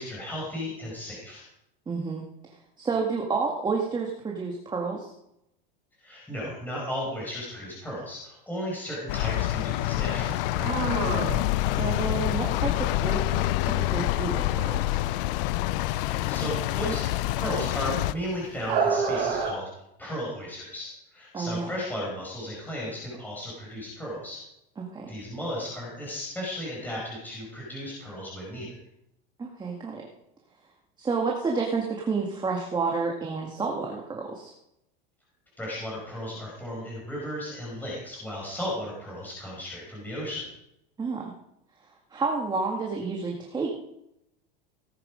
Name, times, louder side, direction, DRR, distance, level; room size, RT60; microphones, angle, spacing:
voice 1, 0.0-1.4 6.0-10.5 16.0-17.1 17.3-19.7 20.0-24.4 25.1-28.8 35.6-40.5, equal, 5° left, -5 dB, 5.2 m, -35 dB
voice 2, 1.9-2.2 2.8-5.1 11.7-15.0 21.3-21.7 24.8-25.1 29.4-30.1 31.0-34.5 41.0-41.3 42.1-43.7, right 4 dB, 15° right, 0 dB, 2.0 m, -30 dB
sound 1, 9.1-18.1, left 16 dB, 70° left, 0.6 m, -27 dB
sound 2, 9.9-19.5, right 5 dB, 65° right, 4.9 m, -32 dB
18.0 x 9.8 x 5.2 m, 0.81 s
supercardioid pair, 145°, 29 cm